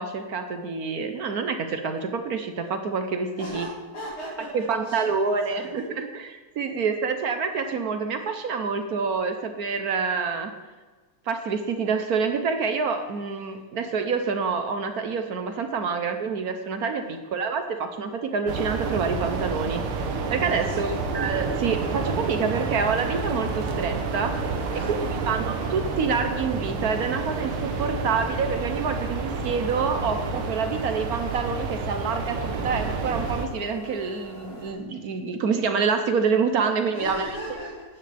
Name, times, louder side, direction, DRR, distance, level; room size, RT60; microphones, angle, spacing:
voice 1, 0.0-3.7 4.5-10.5 11.3-24.4 24.7-37.3, right 5 dB, 55° right, 6 dB, 1.1 m, -27 dB
voice 2, 3.4-5.7 17.0-17.2 20.6-21.0 24.7-25.4 36.9-38.0, equal, 85° left, -10 dB, 4.2 m, -38 dB
sound 1, 18.5-33.5, right 4 dB, 85° right, 1.9 m, -29 dB
sound 2, 20.8-34.7, left 2 dB, 20° left, 2.2 m, -43 dB
15.5 x 10.5 x 3.4 m, 1.3 s
omnidirectional pair, 2.3 m